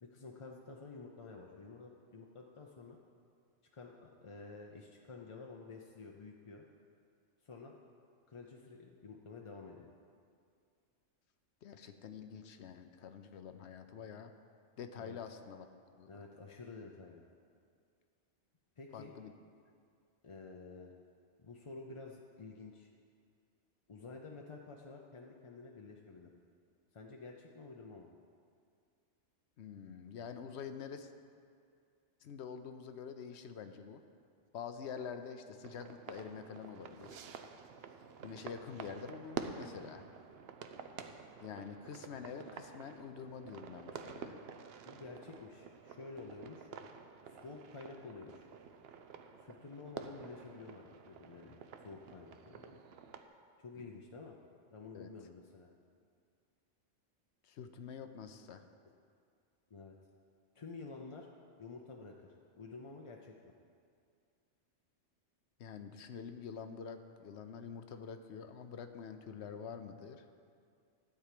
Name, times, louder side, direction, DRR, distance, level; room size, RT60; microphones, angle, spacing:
voice 1, 0.0-3.0 3.7-6.6 7.4-7.8 8.3-9.9 15.0-15.2 16.1-17.2 18.8-19.1 20.2-20.9 21.4-22.9 23.9-26.3 26.9-28.1 37.0-37.1 38.6-38.8 44.9-46.7 47.2-48.5 49.4-52.8 53.6-54.4 54.7-55.7 59.7-60.0 60.5-61.3 61.6-63.5, left 3 dB, 40° left, 0 dB, 0.5 m, -50 dB
voice 2, 11.6-14.3 14.8-15.7 16.0-16.2 18.9-19.3 29.6-31.1 32.2-34.0 34.5-37.2 38.2-40.0 41.4-44.4 54.9-55.1 57.4-58.6 65.6-70.2, left 6 dB, 65° left, 8 dB, 0.9 m, -47 dB
sound 1, 35.6-53.2, right 6 dB, 60° right, 0.8 m, -49 dB
12.5 x 4.6 x 8.3 m, 2.3 s
omnidirectional pair, 1.3 m